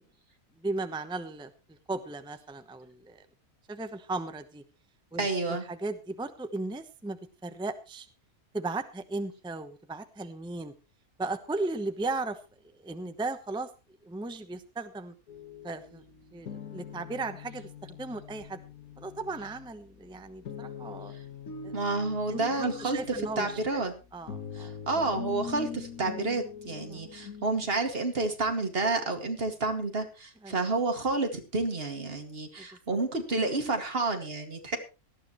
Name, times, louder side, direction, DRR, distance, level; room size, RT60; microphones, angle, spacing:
voice 1, 0.6-1.5 1.9-3.2 3.7-4.6 5.1-8.1 8.5-10.7 11.2-12.4 12.8-13.7 14.0-15.1 15.6-16.0 16.3-18.6 19.0-21.1 21.6-21.7 22.3-23.9 24.1-24.7 26.9-27.0 30.4-30.6 32.6-33.0, right 3 dB, 5° right, 9 dB, 0.8 m, -36 dB
voice 2, 5.2-5.7 21.7-23.0 23.4-23.9 24.6-34.8, right 3 dB, 40° right, 5 dB, 2.4 m, -30 dB
sound 1, 15.3-27.6, left 7 dB, 80° left, 1.7 m, -43 dB
18.0 x 13.0 x 3.1 m, 0.30 s
omnidirectional pair, 1.5 m